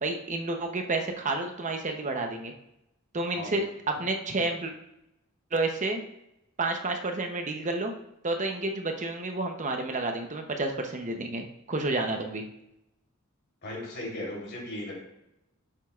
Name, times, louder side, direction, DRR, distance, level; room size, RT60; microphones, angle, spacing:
voice 1, 0.0-2.5 3.1-4.7 5.5-6.0 6.6-7.9 8.2-12.4, right 2 dB, 35° right, 4 dB, 0.8 m, -30 dB
voice 2, 13.6-15.0, left 1 dB, 55° left, -3 dB, 3.4 m, -36 dB
11.0 x 7.5 x 2.4 m, 0.84 s
head